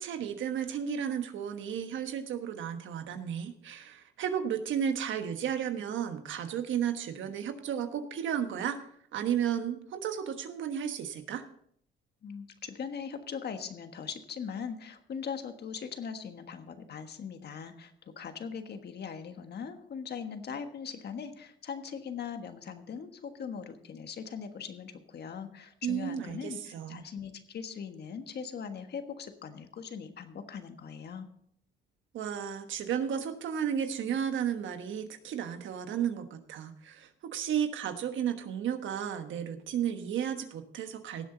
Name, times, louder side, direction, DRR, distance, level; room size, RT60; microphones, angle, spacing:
voice 1, 0.0-8.8 9.1-11.4 25.8-27.0 32.1-41.3, right 8 dB, 75° right, 8 dB, 1.3 m, -33 dB
voice 2, 12.2-31.3, left 6 dB, 55° left, 8 dB, 1.5 m, -40 dB
17.0 x 7.8 x 3.9 m, 0.66 s
cardioid pair, 90°, 20 cm